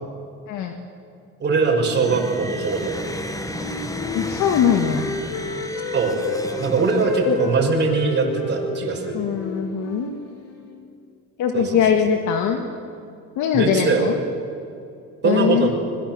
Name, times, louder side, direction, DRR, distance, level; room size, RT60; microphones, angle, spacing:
voice 1, 1.4-2.9 5.9-6.2 6.6-9.2 11.5-11.8 13.5-14.1 15.2-15.7, right 4 dB, 30° right, -1 dB, 5.7 m, -21 dB
sound 1, 1.9-7.5, left 1 dB, 10° left, 1.9 m, -33 dB
Wind instrument woodwind instrument, 3.5-6.5 6.9-10.8, left 3 dB, 85° left, 6.4 m, -31 dB
voice 2, 4.1-5.1 7.2-7.4 9.1-10.1 11.4-12.6 13.4-14.1 15.2-15.7, left 8 dB, 65° left, 4 dB, 2.2 m, -21 dB
26.5 x 21.5 x 7.6 m, 2.6 s
cardioid pair, 130°, 33 cm